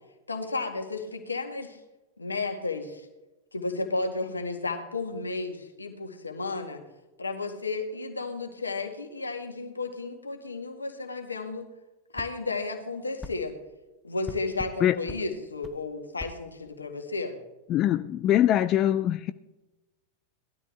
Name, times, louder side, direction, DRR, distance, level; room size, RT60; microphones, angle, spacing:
voice 1, 0.3-1.8 2.2-3.1 3.5-6.8 7.2-11.7 12.1-13.5 14.0-17.4, left 3 dB, 80° left, 1.8 m, -33 dB
sound 1, 12.2-12.3 13.2-13.4 14.3-14.8 15.1-15.2 15.6-15.8 16.2-16.4, left 3 dB, 10° left, 0.9 m, -40 dB
voice 2, 17.7-19.3, left 12 dB, 35° left, 0.4 m, -23 dB
18.5 x 12.5 x 3.4 m
figure-of-eight pair, 90°, 0 cm